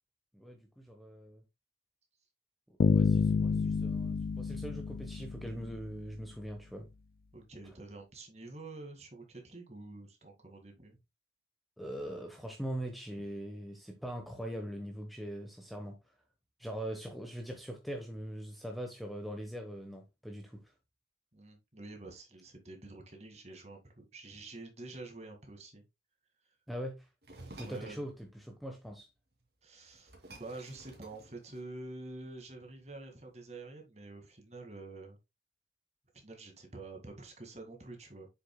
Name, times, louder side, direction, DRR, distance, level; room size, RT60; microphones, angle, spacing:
voice 1, 0.3-1.4 2.7-6.9 11.8-16.0 16.6-20.6 26.7-27.1 27.6-29.1, equal, ahead, 1.0 m, -42 dB
Bass guitar, 2.8-5.9, left 4 dB, 50° left, 0.3 m, -29 dB
voice 2, 7.3-11.0 13.1-13.2 21.3-25.8 27.5-28.1 29.6-35.2 36.2-38.3, right 2 dB, 35° right, 2.0 m, -48 dB
sound 1, 27.2-28.0 29.4-29.5 29.8-31.9, right 2 dB, 60° right, 2.4 m, -53 dB
7.7 x 6.4 x 2.2 m
head